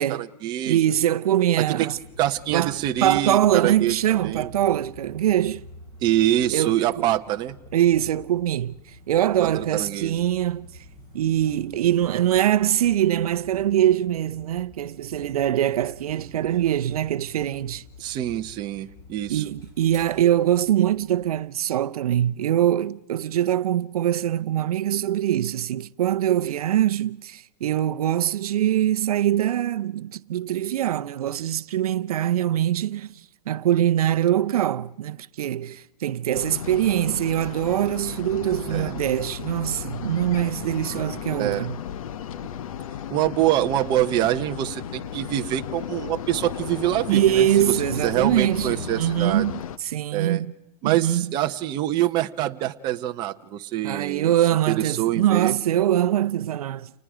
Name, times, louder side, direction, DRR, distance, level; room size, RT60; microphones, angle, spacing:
voice 1, 0.0-0.8 1.6-1.9 2.2-4.5 6.0-7.6 9.4-10.3 18.0-19.4 38.7-38.9 41.4-41.7 43.1-47.8 48.0-49.4 50.1-50.4 50.8-54.3 54.7-55.6, right 13 dB, 20° right, 0.8 m, -25 dB
voice 2, 0.7-2.0 2.5-5.6 6.5-7.1 7.7-10.7 11.1-17.8 19.3-41.8 47.1-50.5 50.8-51.3 53.8-56.9, right 11 dB, 65° right, 0.7 m, -23 dB
sound 1, 1.9-21.4, left 1 dB, 20° left, 6.7 m, -47 dB
sound 2, 36.3-49.8, left 9 dB, 60° left, 1.0 m, -35 dB
29.5 x 19.5 x 4.9 m
hypercardioid pair, 155°, 20 cm